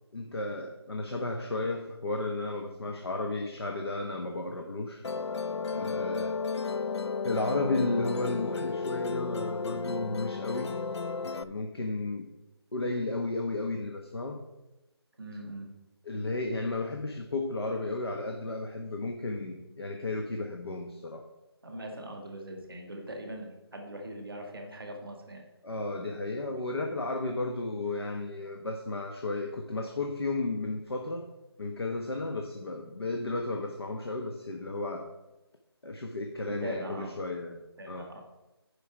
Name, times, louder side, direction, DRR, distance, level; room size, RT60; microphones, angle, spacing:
voice 1, 0.1-5.0 5.7-6.4 7.2-10.8 11.2-12.3 12.7-14.4 16.1-21.2 25.6-31.3 31.6-35.1 35.8-38.1, left 2 dB, 65° left, 3 dB, 1.2 m, -33 dB
Musical instrument, 5.0-11.4, left 4 dB, 85° left, 0.5 m, -33 dB
voice 2, 15.2-15.7 21.6-25.4 36.5-37.1 37.8-38.2, right 1 dB, ahead, -16 dB, 0.5 m, -41 dB
11.0 x 5.1 x 5.0 m, 1.0 s
figure-of-eight pair, 175°, 14 cm